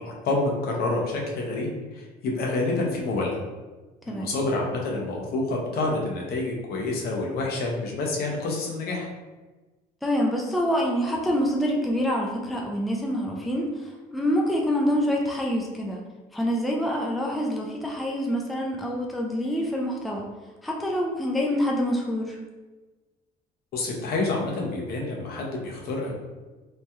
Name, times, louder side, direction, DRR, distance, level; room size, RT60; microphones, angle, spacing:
voice 1, 0.0-3.3 4.1-9.1 23.7-26.1, left 2 dB, 65° left, -1 dB, 0.8 m, -28 dB
voice 2, 10.0-16.0 16.3-20.3 20.6-22.4, equal, ahead, -1 dB, 0.4 m, -26 dB
3.1 x 2.7 x 2.2 m, 1.2 s
cardioid pair, 110°, 17 cm